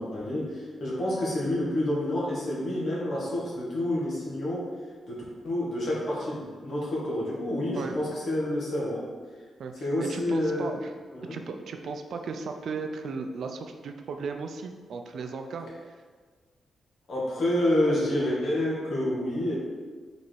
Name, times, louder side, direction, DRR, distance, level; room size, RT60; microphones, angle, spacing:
voice 1, 0.0-4.7 5.1-9.0 9.8-10.7 11.1-11.4 17.1-19.6, left 1 dB, 50° left, -6 dB, 1.8 m, -28 dB
voice 2, 9.6-10.9 11.3-15.7, right 4 dB, 60° right, 5 dB, 0.4 m, -36 dB
5.3 x 4.1 x 4.6 m, 1.5 s
wide cardioid pair, 175°, 0 cm